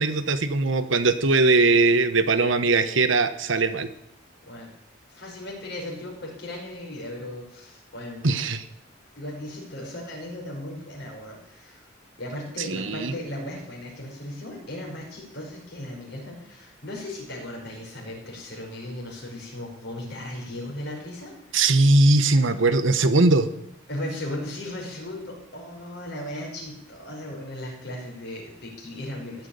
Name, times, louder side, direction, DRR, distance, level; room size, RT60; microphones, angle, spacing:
voice 1, 0.0-3.9 8.2-8.6 12.7-13.1 21.5-23.5, right 3 dB, 70° right, 10 dB, 1.2 m, -20 dB
voice 2, 5.1-8.4 9.2-11.9 12.2-21.7 23.9-29.5, left 1 dB, 55° left, -1 dB, 5.3 m, -37 dB
16.0 x 6.2 x 9.8 m, 0.74 s
head